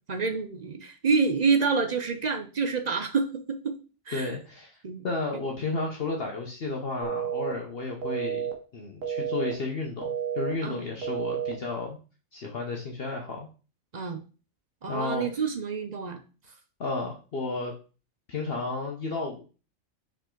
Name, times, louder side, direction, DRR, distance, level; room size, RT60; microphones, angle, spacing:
voice 1, 0.1-3.8 4.1-4.3 4.8-5.0 10.6-10.9 13.9-14.2 14.8-16.2, right 5 dB, 45° right, 7 dB, 0.5 m, -27 dB
voice 2, 4.1-12.0 12.3-13.5 14.9-15.4 16.8-17.7 18.3-19.4, left 3 dB, 50° left, 1 dB, 1.0 m, -33 dB
sound 1, 7.0-7.5 8.0-8.5 9.0-9.5 10.0-10.5 11.0-11.5, right 8 dB, 80° right, 1.5 m, -30 dB
5.2 x 5.0 x 3.7 m, 0.35 s
omnidirectional pair, 1.4 m